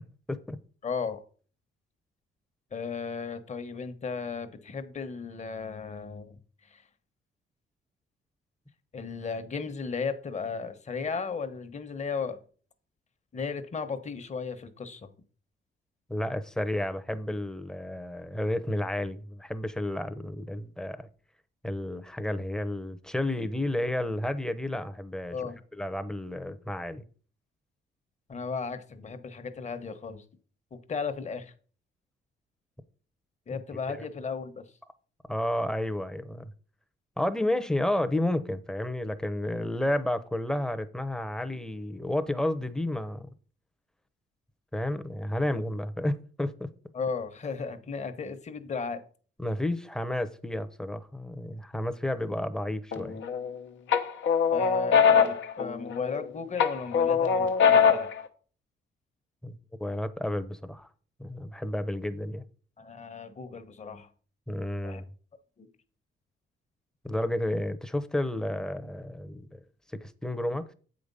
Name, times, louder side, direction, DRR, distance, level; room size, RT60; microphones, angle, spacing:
voice 1, 0.8-1.2 2.7-6.4 6.6-6.8 8.9-12.4 13.3-15.1 25.3-25.6 28.3-30.2 30.7-31.5 33.5-34.7 46.9-49.0 54.5-58.1 62.8-64.1 64.8-65.0 65.6-65.7, left 5 dB, 35° left, 1.2 m, -35 dB
voice 2, 16.1-21.1 21.6-25.4 25.8-27.0 33.5-33.6 33.9-34.1 35.3-36.5 37.2-43.3 44.7-46.7 49.4-53.2 59.4-60.9 61.2-62.4 64.5-65.0 67.0-69.6 70.0-70.7, left 1 dB, 5° left, 0.8 m, -31 dB
sound 1, 52.9-53.5 53.9-56.2 56.6-58.2, left 6 dB, 70° left, 1.0 m, -22 dB
7.8 x 5.1 x 5.4 m
cardioid pair, 90°, 20 cm